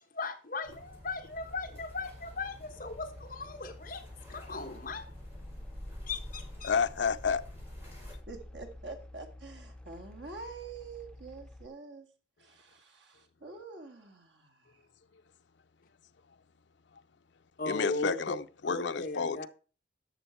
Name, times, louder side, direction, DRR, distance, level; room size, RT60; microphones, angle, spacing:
voice 1, 0.1-4.0 4.3-5.1 6.1-6.7 17.6-18.3 18.6-19.5, left 3 dB, 45° left, 1.3 m, -37 dB
sound 1, 0.6-8.1, left 1 dB, 10° right, 4.9 m, -53 dB
sound 2, 1.4-11.7, left 1 dB, 5° left, 0.6 m, -48 dB
voice 2, 6.6-7.4 17.7-19.5, left 5 dB, 70° left, 0.5 m, -30 dB
voice 3, 8.3-12.1 12.4-14.8, right 3 dB, 70° right, 2.0 m, -46 dB
11.0 x 7.1 x 4.5 m
head